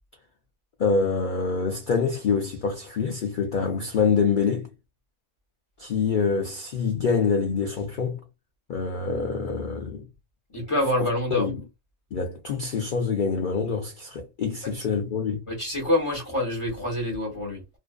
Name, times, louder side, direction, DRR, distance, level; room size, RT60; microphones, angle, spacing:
voice 1, 0.8-4.7 5.8-8.2 8.7-10.1 11.3-11.6 12.1-15.4, left 5 dB, 85° left, 0.4 m, -25 dB
voice 2, 10.5-11.5 14.6-14.7 15.5-17.6, left 1 dB, 25° left, 0.8 m, -26 dB
2.6 x 2.3 x 2.2 m
omnidirectional pair, 1.5 m